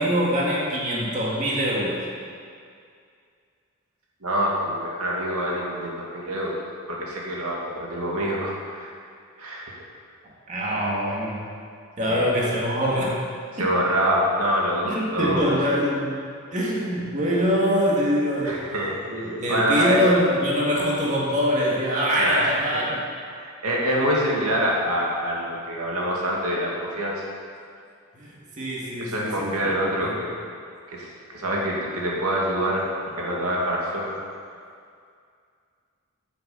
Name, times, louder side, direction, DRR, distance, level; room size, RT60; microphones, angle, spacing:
voice 1, 0.0-2.1 10.5-11.5 12.0-13.2 13.6-13.7 14.8-16.2 16.5-18.7 19.1-23.0 28.1-29.7 30.0-30.2, equal, 35° right, -5 dB, 1.9 m, -24 dB
voice 2, 4.2-6.6 6.9-8.9 9.4-9.7 12.0-12.3 13.5-15.5 18.4-20.0 22.2-22.6 23.4-27.2 29.0-30.3 30.9-31.1 31.3-32.8 33.2-34.1, equal, 85° right, -3 dB, 2.2 m, -25 dB
9.3 x 7.7 x 7.0 m, 2.3 s
head